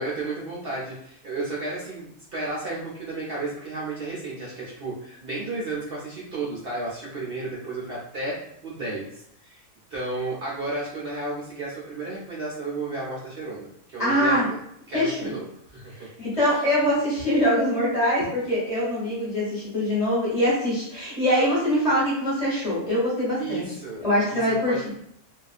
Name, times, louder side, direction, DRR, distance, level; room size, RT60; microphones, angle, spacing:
voice 1, 0.0-9.6 9.9-14.6 14.9-16.7 23.4-24.0 24.3-24.9, right 2 dB, 75° right, -6 dB, 0.5 m, -33 dB
voice 2, 14.0-14.5 14.9-15.3 16.2-25.0, equal, 30° left, -8 dB, 0.8 m, -23 dB
2.5 x 2.3 x 2.4 m, 0.73 s
omnidirectional pair, 1.6 m